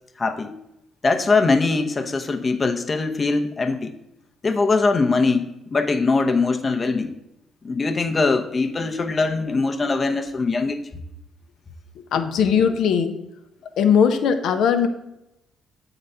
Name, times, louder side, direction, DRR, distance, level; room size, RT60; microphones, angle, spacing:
voice 1, 0.2-0.6 1.0-3.9 4.4-7.1 7.6-10.8, left 3 dB, 35° left, 6 dB, 0.9 m, -22 dB
voice 2, 12.0-13.2 13.8-14.9, left 7 dB, 70° left, 8 dB, 0.7 m, -19 dB
7.7 x 3.9 x 5.6 m, 0.87 s
supercardioid pair, 55°, 0 cm